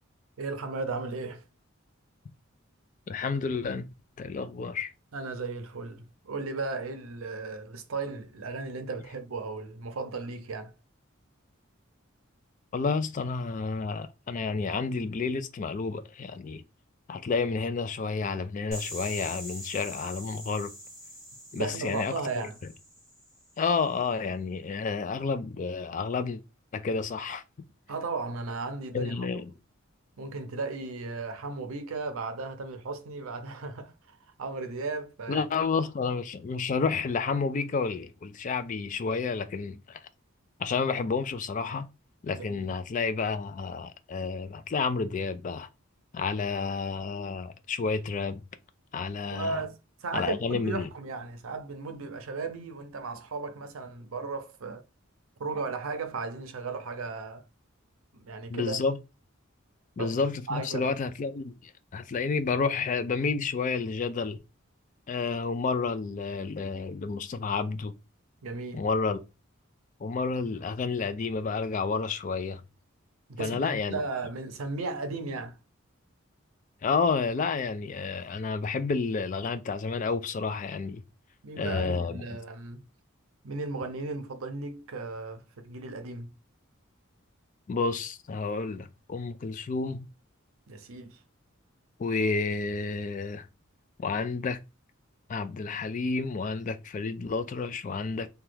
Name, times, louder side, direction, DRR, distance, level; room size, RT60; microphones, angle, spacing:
voice 1, 0.4-1.4 5.1-10.7 21.5-22.6 27.9-29.3 30.2-35.5 42.3-42.7 49.2-54.8 55.4-57.4 58.1-58.8 60.0-60.1 60.5-60.9 68.4-68.9 73.3-75.6 81.4-82.9 83.4-86.4 90.7-91.2, right 3 dB, 90° right, 0.6 m, -36 dB
voice 2, 3.1-3.9 4.2-4.9 12.7-16.6 17.1-20.7 21.5-22.1 23.6-26.4 26.7-27.4 28.9-29.5 35.3-40.1 40.6-41.9 42.2-45.7 46.1-48.4 48.9-49.6 50.1-50.9 58.5-59.0 60.0-64.4 65.1-67.9 68.7-69.2 70.0-72.6 73.4-74.0 76.8-81.0 81.6-82.4 87.7-90.1 92.0-93.5 94.0-94.6 95.3-98.3, left 4 dB, 40° left, 0.3 m, -30 dB
sound 1, 18.7-23.5, equal, 5° right, 1.4 m, -43 dB
2.9 x 2.3 x 3.2 m
head